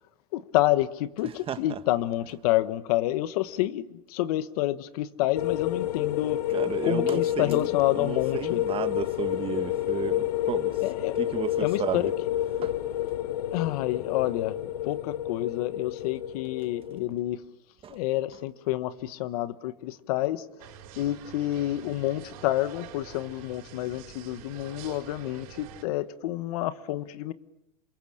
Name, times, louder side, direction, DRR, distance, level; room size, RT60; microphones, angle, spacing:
voice 1, 0.3-6.4 6.8-8.6 10.8-11.2 11.6-12.1 13.3-14.6 14.8-17.4 17.9-20.4 21.0-27.3, left 15 dB, 70° left, 1.3 m, -28 dB
voice 2, 1.5-1.8 6.5-10.8 11.2-12.1 12.6-12.7 17.8-18.0, right 8 dB, 30° right, 1.5 m, -33 dB
sound 1, 5.3-17.0, left 13 dB, 85° left, 1.2 m, -29 dB
sound 2, 20.6-25.8, right 9 dB, 65° right, 4.9 m, -46 dB
27.5 x 22.5 x 8.6 m
supercardioid pair, 130°, 20 cm